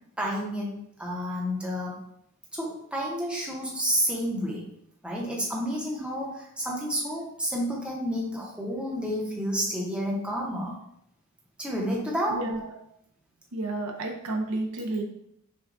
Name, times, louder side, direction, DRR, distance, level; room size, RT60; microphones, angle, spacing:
voice 1, 0.2-2.0 2.5-4.6 5.0-10.8 11.6-12.4, equal, 5° right, -4 dB, 0.7 m, -30 dB
voice 2, 12.3-12.6 13.5-15.0, right 2 dB, 70° right, 2 dB, 0.6 m, -31 dB
6.0 x 2.2 x 2.5 m, 0.76 s
head